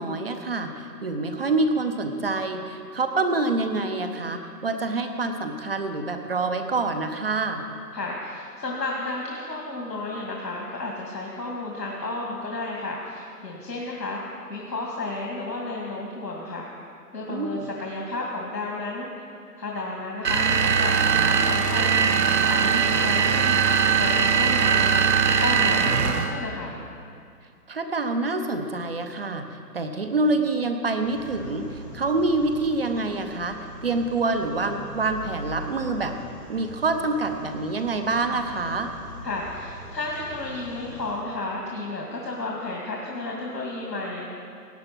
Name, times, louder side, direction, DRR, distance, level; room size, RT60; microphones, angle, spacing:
voice 1, 0.0-7.6 17.3-17.7 22.6-23.0 27.7-29.5 29.7-33.6 33.8-36.2 36.5-38.9, right 3 dB, 35° right, 7 dB, 0.9 m, -26 dB
voice 2, 7.9-14.2 14.5-16.7 17.1-19.1 19.6-24.8 25.1-26.8 39.2-44.3, left 2 dB, 85° left, -2 dB, 2.5 m, -32 dB
sound 1, 20.2-26.4, right 7 dB, 80° right, 1.1 m, -21 dB
sound 2, 31.0-41.1, equal, ahead, 0.8 m, -42 dB
17.0 x 8.8 x 6.0 m, 2.4 s
hypercardioid pair, 160°, 48 cm